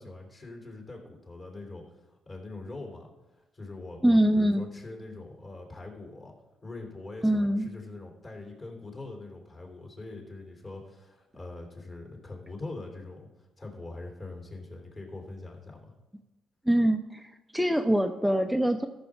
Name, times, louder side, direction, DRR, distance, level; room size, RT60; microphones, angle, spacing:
voice 1, 0.0-3.1 3.5-6.3 6.6-15.9, left 2 dB, 35° left, 1 dB, 3.0 m, -43 dB
voice 2, 4.0-4.6 7.2-7.7 16.7-18.9, right 1 dB, ahead, 4 dB, 0.5 m, -24 dB
13.5 x 6.2 x 4.8 m, 1.1 s
cardioid pair, 90°, 0 cm